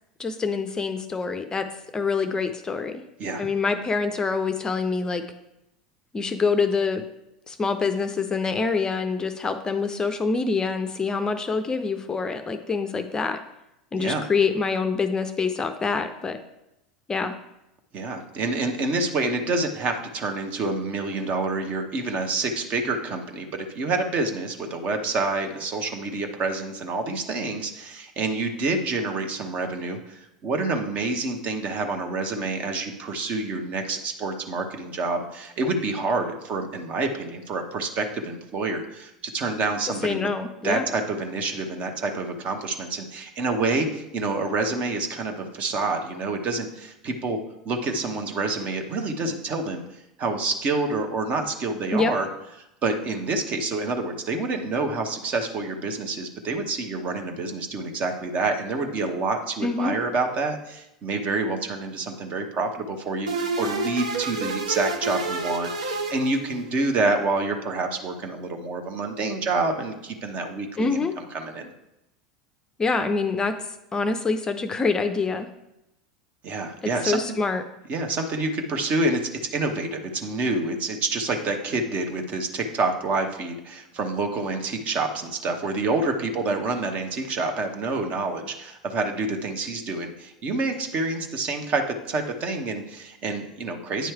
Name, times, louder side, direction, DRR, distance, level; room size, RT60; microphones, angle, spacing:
voice 1, 0.2-1.7 1.9-3.0 3.4-5.2 6.1-7.0 7.5-13.4 13.9-16.4 17.1-17.3 40.0-40.8 51.9-52.1 59.6-60.0 70.8-71.1 72.8-73.5 73.9-75.5 76.8-77.6, left 4 dB, 20° left, 8 dB, 0.5 m, -25 dB
voice 2, 17.9-40.3 40.6-47.4 47.6-49.8 50.2-52.3 52.8-71.7 76.4-77.4 77.9-94.1, right 3 dB, 40° right, 5 dB, 0.9 m, -27 dB
sound 1, 63.3-66.9, right 3 dB, 80° right, 0.7 m, -29 dB
9.2 x 3.1 x 4.7 m, 0.89 s
figure-of-eight pair, 80°, 4 cm